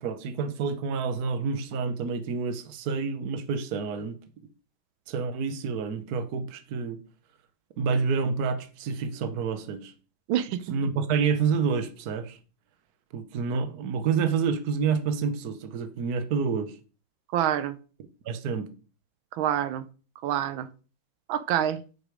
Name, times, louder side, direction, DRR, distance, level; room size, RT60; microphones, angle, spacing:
voice 1, 0.0-4.2 5.1-7.0 7.8-9.9 10.7-12.4 13.1-16.7 18.3-18.7, right 5 dB, 55° right, 1.3 m, -28 dB
voice 2, 10.3-10.6 17.3-17.8 19.3-19.9 20.2-20.7 21.3-21.8, right 10 dB, 85° right, 1.4 m, -26 dB
9.2 x 5.0 x 5.0 m
omnidirectional pair, 2.2 m